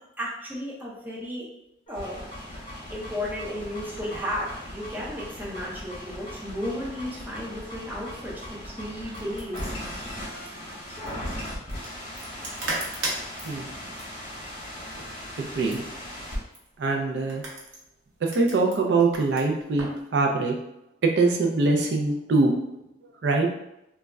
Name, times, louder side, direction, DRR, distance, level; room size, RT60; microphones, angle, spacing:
voice 1, 0.0-1.5 1.9-2.3 2.6-2.7 2.9-9.7, equal, 10° right, -5 dB, 0.5 m, -34 dB
sound 1, 1.9-16.4, equal, 30° left, 0.8 m, -38 dB
sound 2, 8.9-20.0, right 1 dB, 90° right, 0.8 m, -39 dB
voice 2, 15.4-15.8 16.8-17.4 18.2-20.5 21.0-22.5 23.2-23.5, right 3 dB, 65° right, 2 dB, 0.4 m, -23 dB
2.2 x 2.0 x 3.4 m, 0.84 s
head